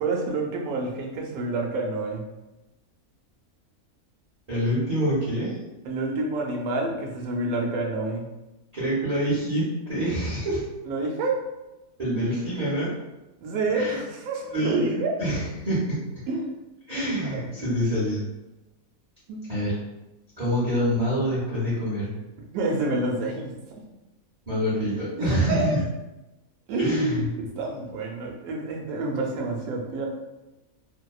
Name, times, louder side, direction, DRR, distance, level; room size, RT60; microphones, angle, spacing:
voice 1, 0.0-2.2 5.9-8.3 10.9-11.4 13.4-15.1 16.3-16.5 17.2-17.6 19.3-19.4 22.5-23.6 25.2-25.8 26.7-30.1, right 2 dB, 85° right, 0 dB, 1.0 m, -28 dB
voice 2, 4.5-5.5 8.7-10.6 12.0-12.9 13.7-14.0 14.5-16.0 16.9-18.2 19.5-19.7 20.4-22.1 24.5-25.8 26.8-27.3, equal, 35° right, -11 dB, 0.7 m, -26 dB
2.7 x 2.1 x 2.3 m, 1.0 s
omnidirectional pair, 1.5 m